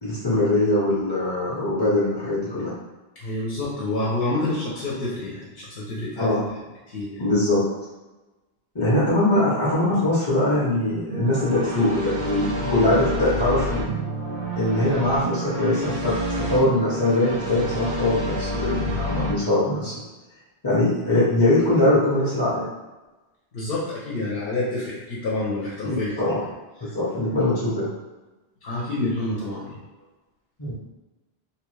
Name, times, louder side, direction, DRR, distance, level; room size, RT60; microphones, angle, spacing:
voice 1, 0.0-2.7 6.2-6.4 7.2-7.6 8.7-14.0 14.5-16.1 16.5-19.9 20.6-22.7 25.8-26.4 26.8-27.9 30.6-30.7, left 1 dB, 30° left, -9 dB, 0.6 m, -22 dB
voice 2, 3.2-6.3 6.9-7.2 23.5-26.3 28.6-29.8, left 2 dB, 65° left, -5 dB, 0.8 m, -28 dB
sound 1, 11.1-19.3, right 1 dB, 60° right, 0.7 m, -29 dB
2.7 x 2.3 x 3.1 m, 1.1 s
omnidirectional pair, 1.1 m